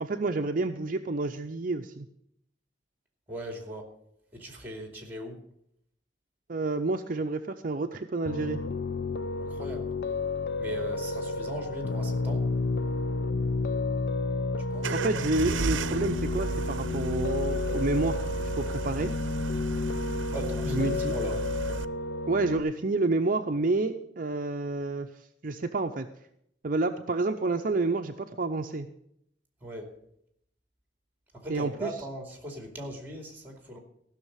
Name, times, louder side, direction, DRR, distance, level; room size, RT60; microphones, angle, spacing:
voice 1, 0.0-2.1 6.5-8.6 14.9-18.2 18.6-19.1 20.7-21.1 22.3-25.1 25.4-26.1 26.6-28.9 31.5-31.9, right 3 dB, 45° right, 6 dB, 0.6 m, -29 dB
voice 2, 3.3-3.9 4.3-5.4 9.4-9.9 10.6-12.5 14.7-14.9 20.3-21.4 29.6-29.9 31.3-33.8, right 1 dB, 10° right, 3 dB, 2.6 m, -39 dB
Piano, 8.3-22.6, left 3 dB, 60° left, 0.6 m, -31 dB
sound 1, 14.8-21.8, right 4 dB, 85° right, 0.6 m, -34 dB
15.5 x 6.4 x 8.1 m, 0.74 s
head